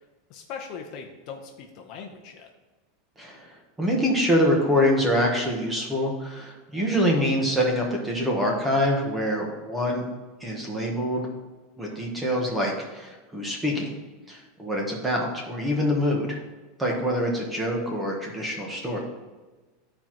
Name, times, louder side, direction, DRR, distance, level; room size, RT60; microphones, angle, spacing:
voice 1, 0.3-2.5, left 6 dB, 40° left, 2 dB, 0.8 m, -40 dB
voice 2, 3.2-3.5 3.8-10.1 10.4-11.3 11.8-13.9 14.3-16.4 16.8-19.0, equal, 5° right, -1 dB, 1.2 m, -25 dB
13.0 x 4.5 x 3.0 m, 1.2 s
supercardioid pair, 175°, 0 cm